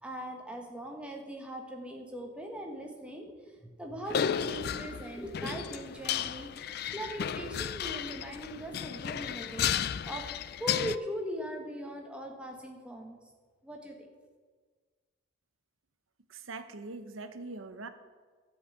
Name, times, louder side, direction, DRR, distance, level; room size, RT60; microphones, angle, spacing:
voice 1, 0.0-10.2 10.6-13.2 13.6-14.1, equal, 5° right, 1 dB, 1.4 m, -40 dB
sound 1, 4.1-11.0, left 8 dB, 50° left, 0.3 m, -33 dB
voice 2, 16.3-17.9, right 3 dB, 90° right, 10 dB, 1.0 m, -42 dB
12.5 x 5.7 x 8.4 m, 1.5 s
head